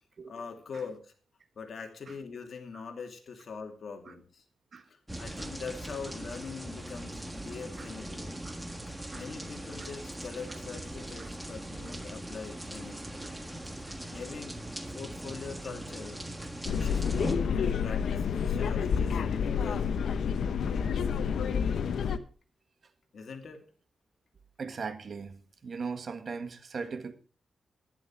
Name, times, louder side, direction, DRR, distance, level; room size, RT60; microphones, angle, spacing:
voice 1, 0.3-1.1 1.6-4.4 4.9-8.3 9.1-13.2 14.1-14.6 14.9-16.2 16.7-20.2 23.1-23.6, left 5 dB, 60° left, 2.5 m, -43 dB
sound 1, 5.1-17.4, right 1 dB, 10° right, 1.6 m, -40 dB
sound 2, 16.7-22.2, left 6 dB, 80° left, 0.9 m, -29 dB
voice 2, 24.6-27.1, right 5 dB, 55° right, 1.6 m, -40 dB
11.5 x 11.0 x 4.7 m
cardioid pair, 90°, 0 cm